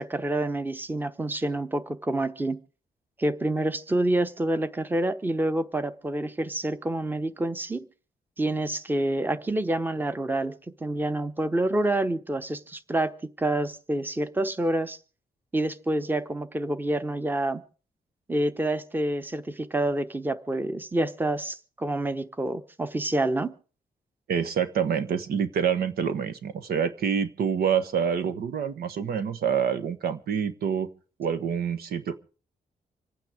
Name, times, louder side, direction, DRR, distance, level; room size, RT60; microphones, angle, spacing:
voice 1, 0.0-2.6 3.2-7.8 8.4-10.5 10.8-15.0 15.5-17.6 18.3-23.5, right 1 dB, 10° right, 11 dB, 1.0 m, -27 dB
voice 2, 24.3-30.9 31.2-32.2, right 7 dB, 85° right, 11 dB, 1.3 m, -27 dB
26.5 x 9.2 x 5.0 m, 0.39 s
wide cardioid pair, 130°, 15 cm